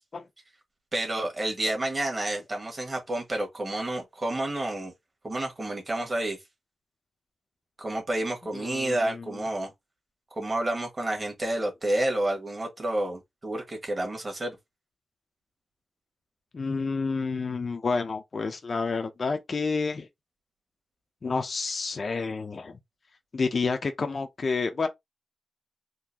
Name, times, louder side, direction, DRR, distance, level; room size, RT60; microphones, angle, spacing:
voice 1, 0.9-4.9 5.2-6.4 7.8-9.7 10.4-14.5, right 1 dB, 25° right, 1.6 m, -29 dB
voice 2, 8.5-9.2 16.5-20.1 21.2-22.8 23.3-24.9, left 4 dB, 40° left, 0.5 m, -29 dB
3.8 x 2.7 x 2.8 m
wide cardioid pair, 130°, 0 cm